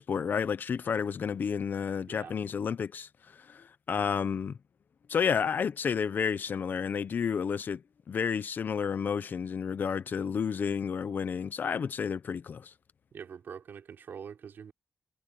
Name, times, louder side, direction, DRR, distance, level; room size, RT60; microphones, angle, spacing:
voice 1, 0.0-3.1 3.5-4.6 5.1-7.8 8.1-12.7, left 6 dB, 65° left, 0.7 m, -31 dB
voice 2, 13.1-14.7, right 7 dB, 85° right, 4.4 m, -44 dB
wide cardioid pair, 115°, 3 cm